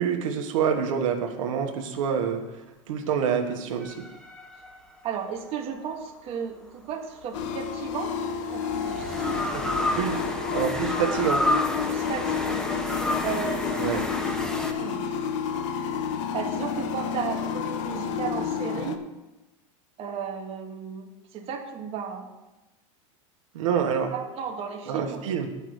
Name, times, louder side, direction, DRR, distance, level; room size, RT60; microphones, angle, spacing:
voice 1, 0.0-4.0 9.5-9.6 10.0-10.2 10.5-11.5 13.8-14.0 23.5-24.1 24.9-25.5, right 7 dB, 80° right, 3 dB, 1.4 m, -27 dB
sound 1, 3.8-5.3 7.2-14.7, left 1 dB, 5° left, 0.8 m, -31 dB
voice 2, 5.0-8.1 8.5-10.4 11.9-14.0 14.7-15.3 16.3-19.0 20.0-22.3 24.1-25.2, right 7 dB, 35° right, 3 dB, 1.3 m, -35 dB
sound 2, 7.3-19.0, left 7 dB, 70° left, 0.9 m, -30 dB
8.1 x 5.8 x 7.9 m, 1.0 s
supercardioid pair, 130°, 16 cm